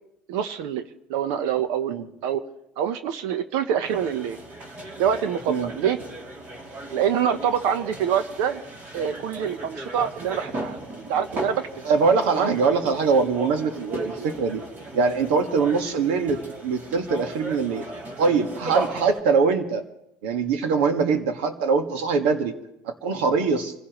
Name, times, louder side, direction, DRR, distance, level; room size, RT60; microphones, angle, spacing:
voice 1, 0.3-2.0 2.2-2.4 2.8-4.4 5.0-6.0 6.9-8.6 8.9-11.7 12.3-12.5 14.0-14.3, right 8 dB, 75° right, 10 dB, 1.0 m, -26 dB
sound 1, 3.8-19.2, right 1 dB, 35° right, 3.0 m, -37 dB
voice 2, 11.8-14.6 14.9-17.9 18.2-19.8 20.2-22.5 22.8-23.7, right 5 dB, 90° right, 6 dB, 1.8 m, -22 dB
26.5 x 16.5 x 3.1 m, 0.82 s
cardioid pair, 135°, 5 cm